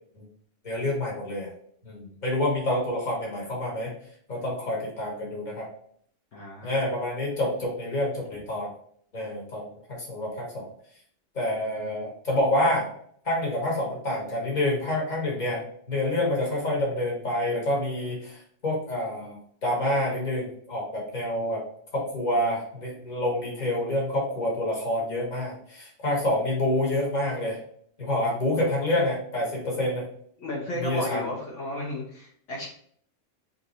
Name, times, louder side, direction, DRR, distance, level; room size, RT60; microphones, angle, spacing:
voice 1, 0.6-1.5 1.8-3.9 4.3-5.7 6.6-8.7 9.1-10.7 11.3-12.9 13.2-21.6 21.9-27.6 28.0-30.1 30.7-31.2, left 1 dB, 35° left, -3 dB, 1.5 m, -27 dB
voice 2, 6.3-6.9 30.4-32.7, left 1 dB, 75° left, -3 dB, 1.2 m, -33 dB
3.7 x 2.7 x 4.1 m, 0.63 s
omnidirectional pair, 1.3 m